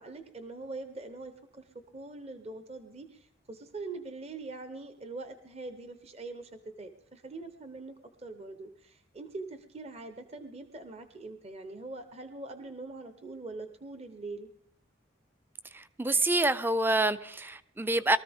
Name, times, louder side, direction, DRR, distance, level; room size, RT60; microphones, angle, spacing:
voice 1, 0.0-1.6 1.9-6.5 6.8-14.5, right 3 dB, 30° right, 8 dB, 0.9 m, -43 dB
voice 2, 15.7-18.2, right 2 dB, 10° right, 14 dB, 0.5 m, -27 dB
23.0 x 14.0 x 3.6 m, 0.67 s
head